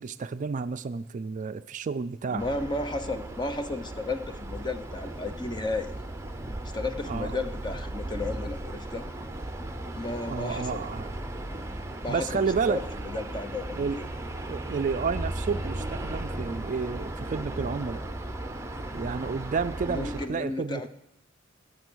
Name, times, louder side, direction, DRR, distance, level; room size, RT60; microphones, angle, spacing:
voice 1, 0.0-2.5 7.1-7.4 10.3-11.1 12.1-12.8 13.8-14.0 14.5-18.0 18.9-20.9, right 5 dB, 40° right, 12 dB, 0.4 m, -31 dB
voice 2, 2.3-5.9 6.7-9.1 9.9-10.8 12.0-14.1 19.9-20.9, left 2 dB, 20° left, 8 dB, 0.8 m, -33 dB
sound 1, 2.4-20.3, right 1 dB, 15° right, 0.8 m, -36 dB
17.5 x 6.8 x 6.2 m, 0.77 s
head